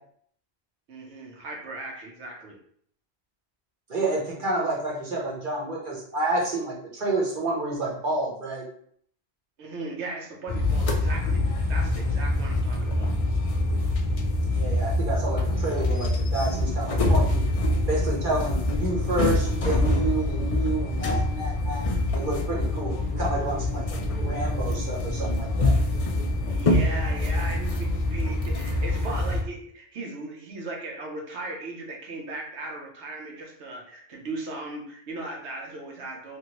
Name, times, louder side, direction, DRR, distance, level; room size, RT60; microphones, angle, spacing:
voice 1, 0.9-2.6 9.6-13.1 17.7-17.8 26.5-36.4, right 2 dB, 85° right, 1 dB, 1.0 m, -37 dB
voice 2, 3.9-8.7 14.5-17.4 17.9-21.8 22.1-25.8, right 2 dB, 50° right, -4 dB, 1.0 m, -29 dB
sound 1, 10.5-29.4, left 2 dB, 60° left, 0.3 m, -25 dB
3.0 x 2.6 x 2.9 m, 0.63 s
omnidirectional pair, 1.1 m